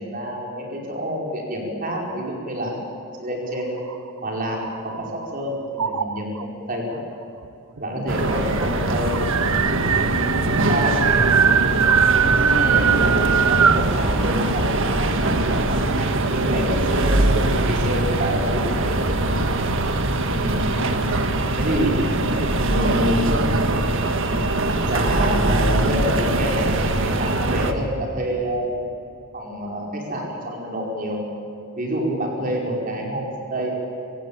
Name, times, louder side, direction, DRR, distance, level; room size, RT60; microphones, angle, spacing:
voice 1, 0.0-3.8 4.2-7.0 7.8-9.1 10.7-11.0 12.5-14.7 15.0-19.0 20.3-20.6 21.6-22.0 22.6-23.3 24.8-28.7 29.3-31.2 31.8-33.7, equal, 40° right, -1 dB, 5.2 m, -27 dB
sound 1, 3.8-5.3 5.8-6.4 7.4-7.5 7.8-7.9 8.2-13.9, right 8 dB, 80° right, 0.9 m, -21 dB
sound 2, 8.1-27.7, right 2 dB, 60° right, 1.7 m, -22 dB
voice 2, 8.3-8.9 10.6-11.5 12.2-13.0 22.3-23.4, right 1 dB, 25° right, -2 dB, 7.4 m, -37 dB
25.0 x 16.5 x 8.9 m, 2.7 s
head